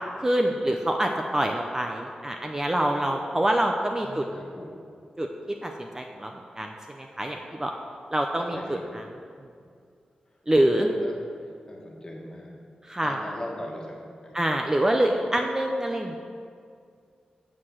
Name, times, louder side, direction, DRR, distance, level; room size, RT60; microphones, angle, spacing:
voice 1, 0.2-4.2 5.2-5.3 5.6-6.7 7.0-7.7 8.1-8.8 10.5-10.9 12.8-13.2 14.3-16.2, right 1 dB, 20° right, 3 dB, 0.5 m, -25 dB
voice 2, 4.0-4.8 8.5-8.8 10.3-12.6 13.0-14.4, left 1 dB, 25° left, -1 dB, 1.6 m, -40 dB
8.6 x 4.8 x 7.3 m, 2.3 s
wide cardioid pair, 90°, 3 cm